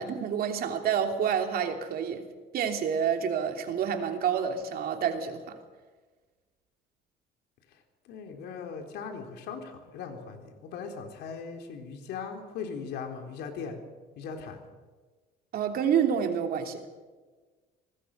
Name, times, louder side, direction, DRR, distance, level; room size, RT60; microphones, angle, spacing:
voice 1, 0.0-2.3 2.5-5.6 15.5-16.8, right 7 dB, 65° right, 3.1 m, -28 dB
voice 2, 8.1-13.8 14.2-14.7, left 6 dB, 80° left, 3.8 m, -39 dB
25.0 x 19.5 x 6.7 m
cardioid pair, 110°, 17 cm